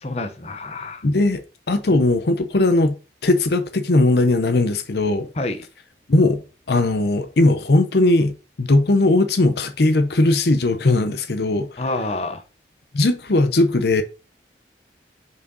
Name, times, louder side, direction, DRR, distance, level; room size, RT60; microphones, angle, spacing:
voice 1, 0.0-1.0 5.4-5.6 11.8-12.4, left 2 dB, 35° left, 0.8 m, -28 dB
voice 2, 1.0-2.9 3.2-5.3 6.1-6.4 6.7-8.3 8.6-11.7 12.9-14.0, left 2 dB, 70° left, 0.7 m, -18 dB
5.6 x 4.8 x 4.0 m
head